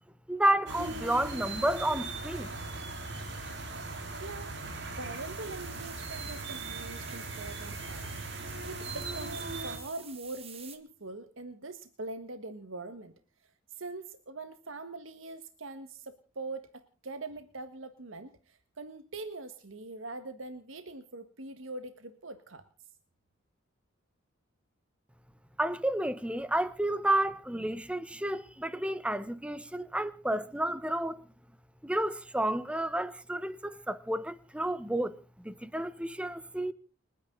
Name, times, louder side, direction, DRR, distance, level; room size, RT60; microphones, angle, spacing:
voice 1, 0.3-2.5 25.6-31.2 31.8-35.2 35.4-36.7, right 1 dB, 5° right, 1.0 m, -31 dB
sound 1, 0.7-9.8, right 3 dB, 60° right, 3.9 m, -39 dB
voice 2, 3.9-4.6 5.0-8.1 8.6-13.1 13.8-22.6, right 2 dB, 85° right, 1.5 m, -43 dB
sound 2, 5.1-10.8, right 8 dB, 30° right, 2.0 m, -50 dB
30.0 x 10.0 x 3.8 m
head